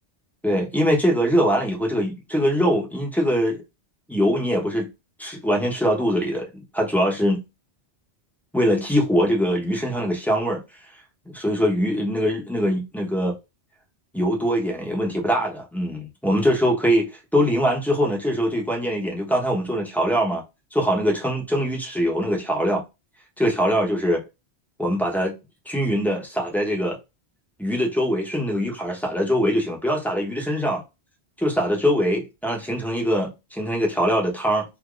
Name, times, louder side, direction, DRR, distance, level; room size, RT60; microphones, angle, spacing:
voice 1, 0.4-3.6 4.1-4.9 5.2-7.4 8.5-10.6 11.3-13.3 14.1-20.4 20.7-22.8 23.4-24.2 24.8-25.3 25.7-27.0 27.6-30.8 31.4-34.6, equal, ahead, 0.9 m, -22 dB
3.5 x 2.8 x 2.4 m
omnidirectional pair, 1.1 m